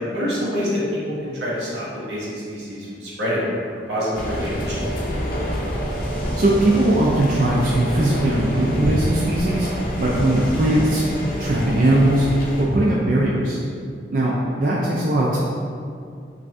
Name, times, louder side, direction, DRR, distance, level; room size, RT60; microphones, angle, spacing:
voice 1, 0.1-0.8 1.0-4.8, equal, 85° right, -7 dB, 1.2 m, -26 dB
sound 1, 4.1-12.6, equal, 55° left, 0.6 m, -26 dB
voice 2, 6.4-9.7 10.0-11.0 11.4-12.3 12.6-13.6 14.1-15.4, right 1 dB, 50° right, -5 dB, 0.4 m, -19 dB
3.2 x 2.6 x 3.5 m, 2.3 s
head